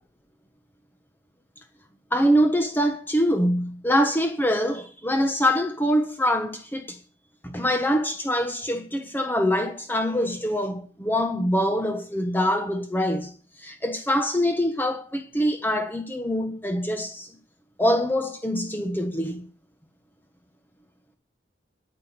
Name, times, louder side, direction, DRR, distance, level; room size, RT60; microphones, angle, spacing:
voice 1, 2.1-7.0 7.4-13.3 13.6-17.3 17.8-19.4, equal, 10° left, 1.3 m, -24 dB
10.0 x 9.5 x 7.9 m
head